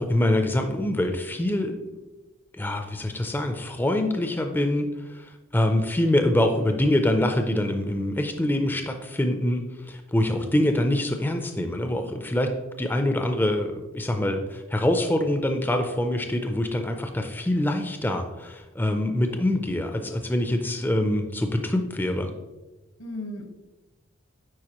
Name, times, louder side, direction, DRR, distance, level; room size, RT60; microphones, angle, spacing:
voice 1, 0.0-1.7 2.5-12.5 12.8-22.3, left 1 dB, 10° left, 5 dB, 0.4 m, -25 dB
voice 2, 10.3-10.8 23.0-23.4, left 2 dB, 80° left, 4 dB, 1.1 m, -37 dB
9.4 x 4.5 x 3.0 m, 1.1 s
head